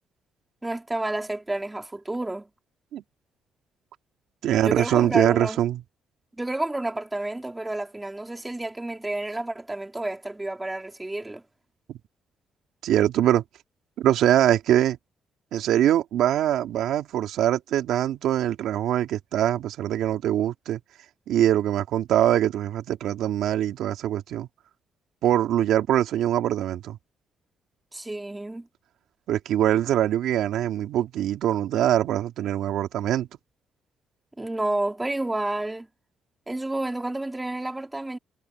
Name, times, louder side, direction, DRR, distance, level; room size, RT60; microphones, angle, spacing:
voice 1, 0.6-2.5 4.5-5.6 6.4-11.4 27.9-28.7 34.4-35.9 36.5-38.2, right 2 dB, 15° right, 3.0 m, -30 dB
voice 2, 4.4-5.8 11.9-12.0 12.8-13.4 14.0-15.0 15.5-20.8 21.3-24.5 25.2-27.0 29.3-33.3, right 11 dB, 80° right, 2.6 m, -23 dB
cardioid pair, 90°, 0 cm